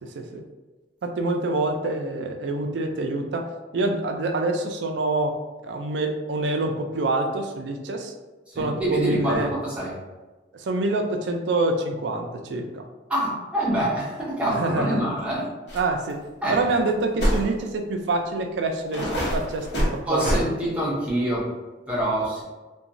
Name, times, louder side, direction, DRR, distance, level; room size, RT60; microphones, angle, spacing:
voice 1, 0.0-0.4 1.0-3.5 3.7-5.3 5.6-8.1 8.6-9.5 10.5-12.8 14.5-15.0 15.7-16.2 16.5-20.4, right 2 dB, 75° right, 4 dB, 0.4 m, -26 dB
voice 2, 8.5-9.9 13.1-15.5 16.4-16.6 20.1-21.5 21.9-22.4, right 1 dB, 5° right, -6 dB, 0.7 m, -25 dB
sound 1, 15.7-15.8 16.1-16.2 17.2-17.5 18.2-18.3 18.9-20.4, equal, 65° left, 0.9 m, -24 dB
2.9 x 2.2 x 2.5 m, 1.2 s
head